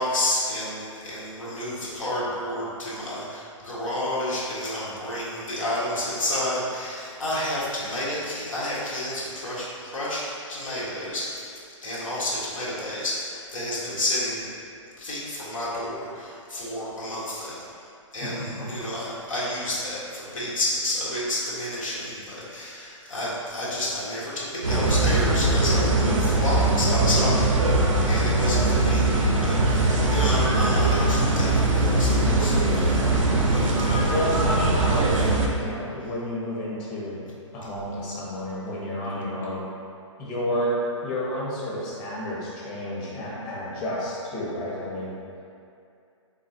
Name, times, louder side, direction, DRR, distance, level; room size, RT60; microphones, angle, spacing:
voice 1, 0.0-14.5 15.0-17.7 18.1-33.0 33.5-34.1, left 1 dB, 85° left, -9 dB, 1.4 m, -30 dB
sound 1, 24.6-35.5, right 2 dB, 85° right, 0.7 m, -21 dB
voice 2, 33.1-33.6 34.1-35.1 35.6-39.7 40.2-45.1, equal, 30° left, -6 dB, 1.0 m, -30 dB
4.0 x 3.6 x 2.7 m, 2.4 s
hypercardioid pair, 130°, 17 cm